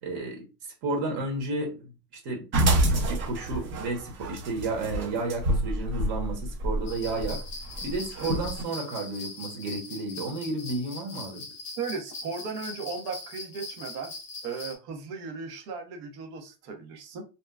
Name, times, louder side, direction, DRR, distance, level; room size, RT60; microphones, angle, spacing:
voice 1, 0.0-0.5 0.8-1.8 2.2-7.4 7.8-11.5, right 2 dB, 55° right, 1 dB, 1.2 m, -32 dB
sound 1, 2.5-8.6, right 1 dB, 25° right, 0.6 m, -27 dB
sound 2, 6.9-14.7, left 3 dB, 20° left, 0.3 m, -41 dB
voice 2, 11.8-14.1 14.4-17.2, right 5 dB, 85° right, 3 dB, 1.1 m, -36 dB
2.8 x 2.2 x 2.3 m, 0.30 s
cardioid pair, 155°, 48 cm